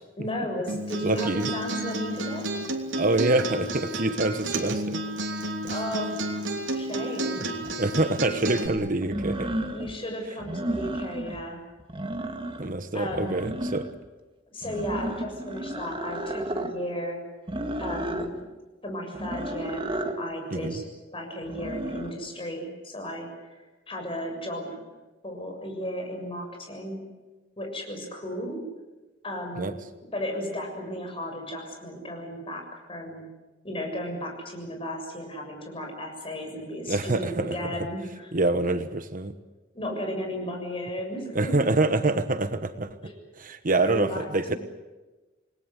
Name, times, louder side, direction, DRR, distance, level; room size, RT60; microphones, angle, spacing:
voice 1, 0.2-2.4 5.7-6.2 6.7-7.5 9.7-11.6 12.9-13.4 14.5-17.2 17.8-18.4 18.8-19.9 20.2-24.8 25.2-27.0 27.6-28.6 29.2-29.7 30.1-32.6 32.9-33.3 33.6-38.3 39.7-41.6 43.0-43.1 43.7-44.6, equal, 30° left, 3 dB, 6.9 m, -34 dB
Acoustic guitar, 0.7-8.7, right 1 dB, 80° right, 3.1 m, -31 dB
voice 2, 1.0-1.5 3.0-5.0 7.8-9.5 12.6-13.8 20.5-20.8 29.6-29.7 36.9-37.7 38.3-39.3 41.3-43.0 43.4-44.6, right 2 dB, 45° right, 10 dB, 1.2 m, -26 dB
sound 1, 7.6-7.7 9.0-9.9 10.4-11.4 11.8-12.7 13.1-14.1 14.6-16.7 17.5-18.3 19.1-20.2 21.4-22.1, right 1 dB, 30° right, 2.1 m, -32 dB
28.5 x 20.0 x 8.1 m, 1.2 s
head